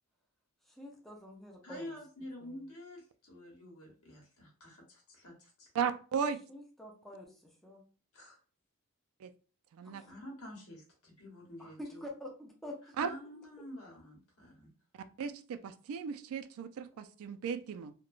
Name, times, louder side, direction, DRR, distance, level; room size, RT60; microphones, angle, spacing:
voice 1, 0.6-2.0 2.4-2.6 6.5-7.8 9.8-10.1 11.6-13.0, left 1 dB, ahead, -1 dB, 0.5 m, -47 dB
voice 2, 1.6-5.7 8.1-8.4 10.1-12.0 13.0-14.7, left 1 dB, 65° left, -1 dB, 1.0 m, -48 dB
voice 3, 5.7-6.4 9.2-9.3 9.7-10.0 13.0-13.1 15.2-17.9, right 6 dB, 65° right, 12 dB, 0.3 m, -35 dB
2.9 x 2.1 x 2.3 m, 0.39 s
head